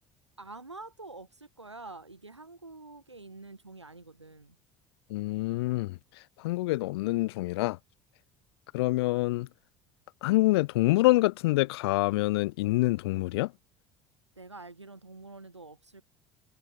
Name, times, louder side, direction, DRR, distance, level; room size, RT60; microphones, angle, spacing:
voice 1, 0.4-4.6 14.4-16.0, right 3 dB, 90° right, 5.8 m, -47 dB
voice 2, 5.1-6.0 6.4-7.8 8.7-9.5 10.2-13.5, left 19 dB, 65° left, 0.4 m, -26 dB
figure-of-eight pair, 65°, 14 cm